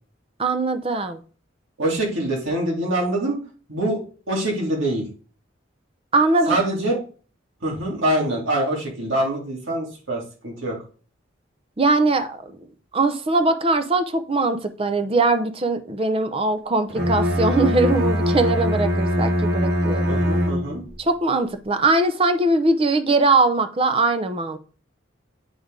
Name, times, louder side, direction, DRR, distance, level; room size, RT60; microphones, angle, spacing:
voice 1, 0.4-1.2 6.1-6.6 11.8-12.4 12.9-20.2 21.0-24.6, right 2 dB, 30° right, 9 dB, 0.6 m, -21 dB
voice 2, 1.8-3.4 3.7-4.0 4.3-5.1 6.5-6.9 7.6-10.8 20.1-20.8, right 1 dB, 85° right, -2 dB, 2.4 m, -24 dB
Bowed string instrument, 16.9-21.0, equal, 55° right, 1.1 m, -22 dB
8.6 x 3.4 x 3.7 m, 0.38 s
head